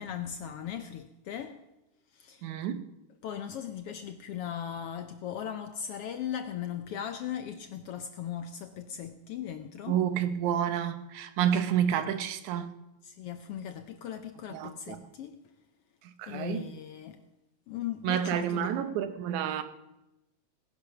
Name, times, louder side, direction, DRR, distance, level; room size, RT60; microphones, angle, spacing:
voice 1, 0.0-1.6 2.1-2.5 3.2-10.0 13.0-15.4 16.3-17.2 17.7-18.8, left 9 dB, 75° left, 1.4 m, -38 dB
voice 2, 2.4-2.9 9.9-12.7 14.5-15.1 16.0-16.7 18.0-19.6, right 9 dB, 85° right, 2.4 m, -29 dB
18.0 x 10.5 x 5.8 m
omnidirectional pair, 3.3 m